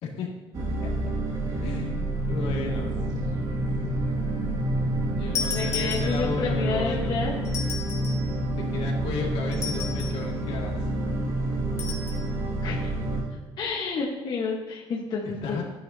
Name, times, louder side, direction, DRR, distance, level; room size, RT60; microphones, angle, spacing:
sound 1, 0.5-13.2, right 1 dB, 40° right, 2.1 m, -28 dB
voice 1, 1.6-2.9 5.2-7.1 8.6-10.8 15.2-15.6, left 4 dB, 75° left, -1 dB, 2.1 m, -34 dB
sound 2, 5.3-6.5 7.4-8.3 9.5-10.3 11.8-12.2, left 6 dB, 30° left, 1.9 m, -34 dB
voice 2, 5.4-7.5 12.6-12.9 13.6-15.6, left 4 dB, 45° left, -2 dB, 1.3 m, -30 dB
14.5 x 9.4 x 2.8 m, 1.2 s
cardioid pair, 155°, 10 cm